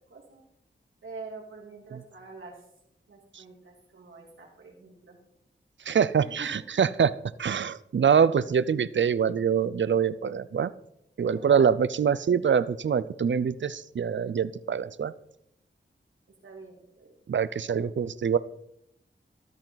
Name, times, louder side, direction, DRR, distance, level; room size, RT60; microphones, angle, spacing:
voice 1, 0.1-0.4 1.0-2.6 3.1-5.2 6.2-6.5 11.2-11.7 16.4-17.1 17.7-17.8, right 3 dB, 90° right, -2 dB, 2.4 m, -44 dB
voice 2, 5.9-7.1 7.4-10.7 11.2-15.1 17.3-18.4, right 7 dB, 70° right, 16 dB, 0.5 m, -24 dB
13.5 x 13.0 x 4.0 m, 0.78 s
wide cardioid pair, 80°, 20 cm